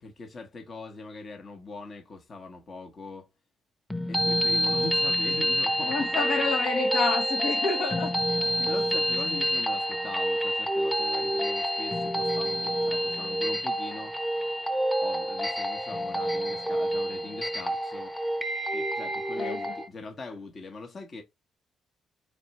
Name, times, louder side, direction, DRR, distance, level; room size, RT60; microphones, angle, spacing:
voice 1, 0.0-3.3 4.1-6.0 8.7-14.2 15.0-18.1 18.7-21.2, left 3 dB, 45° left, 0.9 m, -42 dB
sound 1, 3.9-19.9, equal, 5° left, 0.7 m, -28 dB
voice 2, 5.8-8.1 8.6-8.7 19.4-19.8, left 4 dB, 75° left, 1.0 m, -29 dB
4.2 x 3.3 x 2.8 m
cardioid pair, 90°, 0 cm